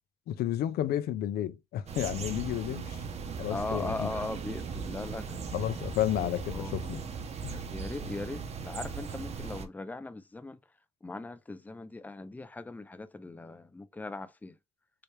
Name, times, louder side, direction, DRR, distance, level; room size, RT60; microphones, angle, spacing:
voice 1, 0.3-3.0 3.4-4.1 5.5-7.0 7.4-7.6, left 12 dB, 70° left, 0.5 m, -32 dB
sound 1, 1.9-9.7, right 5 dB, 40° right, 0.8 m, -38 dB
voice 2, 3.5-5.7 6.2-7.2 7.5-10.6 11.0-14.6, left 2 dB, 10° left, 0.4 m, -39 dB
3.2 x 2.8 x 3.2 m
cardioid pair, 110°, 17 cm